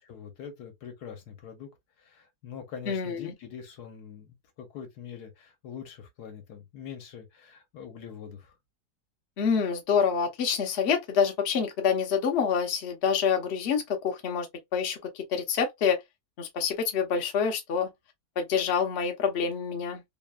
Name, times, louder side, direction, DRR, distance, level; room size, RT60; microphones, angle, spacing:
voice 1, 0.0-1.7 2.0-8.5, left 7 dB, 80° left, 1.3 m, -44 dB
voice 2, 2.9-3.3 9.4-14.5 14.7-16.0 16.4-17.9 18.4-20.0, left 6 dB, 55° left, 0.8 m, -27 dB
3.1 x 2.2 x 2.2 m
omnidirectional pair, 1.7 m